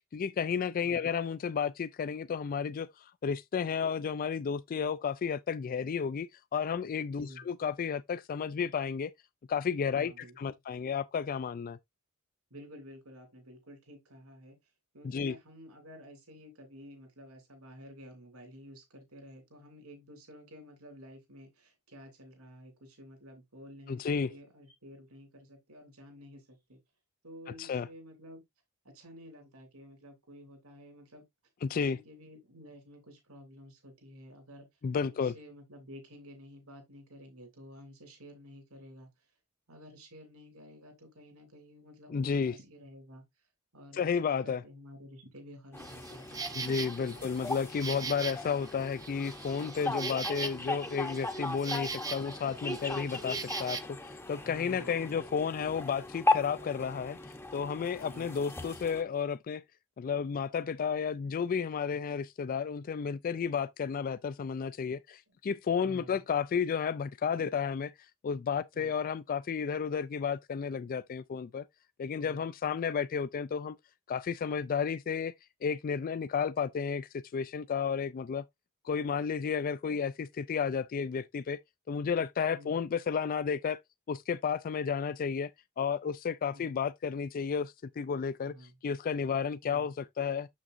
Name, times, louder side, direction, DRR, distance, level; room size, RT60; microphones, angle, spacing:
voice 1, 0.1-9.1 9.5-11.8 15.0-15.3 23.9-24.3 27.6-27.9 31.6-32.0 34.8-35.3 42.1-42.6 43.9-44.6 46.5-57.2 57.5-59.6 60.0-67.9 68.2-71.6 72.0-73.8 74.1-75.3 75.6-78.4 78.8-81.6 81.9-83.8 84.1-85.5 85.8-88.5 88.8-90.5, left 6 dB, 40° left, 0.3 m, -32 dB
voice 2, 9.9-10.5 12.5-14.6 14.9-26.8 27.2-28.4 28.8-31.2 31.7-34.7 35.0-39.3 39.7-43.5 43.7-46.5 47.1-47.3 54.4-55.1 58.1-58.4 65.8-66.2 68.7-69.0 82.5-82.8 86.5-86.7 88.5-88.8 89.6-89.9, equal, 75° right, 2.8 m, -51 dB
sound 1, 45.7-59.0, left 2 dB, 10° left, 0.8 m, -37 dB
Insect, 45.8-53.8, right 5 dB, 15° right, 0.5 m, -41 dB
7.1 x 6.3 x 2.5 m
head